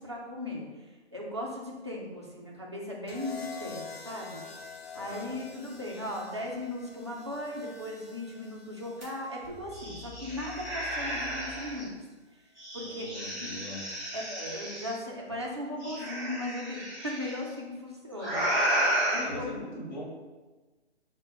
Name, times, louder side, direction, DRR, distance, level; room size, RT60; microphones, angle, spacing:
voice 1, 0.0-11.9 12.3-12.4 12.7-13.5 14.1-19.5, left 1 dB, 25° right, -3 dB, 0.4 m, -38 dB
sound 1, 3.1-11.2 12.4-12.8, left 5 dB, 60° left, 0.6 m, -47 dB
voice 2, 4.9-5.4 12.8-13.8 19.2-20.0, left 1 dB, 40° left, -3 dB, 1.0 m, -41 dB
sound 2, 9.0-9.1 9.4-11.8 12.6-14.9 15.8-17.3 18.2-19.2, right 1 dB, 5° left, 0.8 m, -32 dB
4.6 x 2.1 x 3.9 m, 1.3 s
hypercardioid pair, 160°, 34 cm